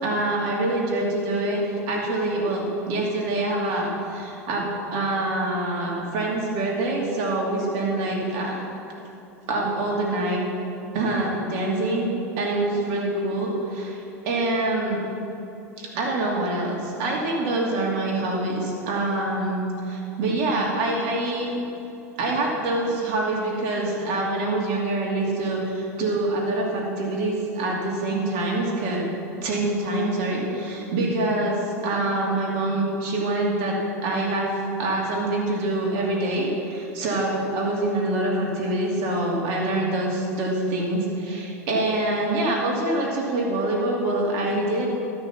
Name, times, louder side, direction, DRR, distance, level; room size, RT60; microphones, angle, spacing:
voice 1, 0.0-8.6 9.5-10.5 10.9-14.0 14.2-15.0 15.8-21.6 22.2-29.1 29.4-33.8 34.0-34.5 34.8-44.9, right 2 dB, 60° right, -2 dB, 2.8 m, -25 dB
13.0 x 6.1 x 5.9 m, 2.8 s
hypercardioid pair, 90°, 9 cm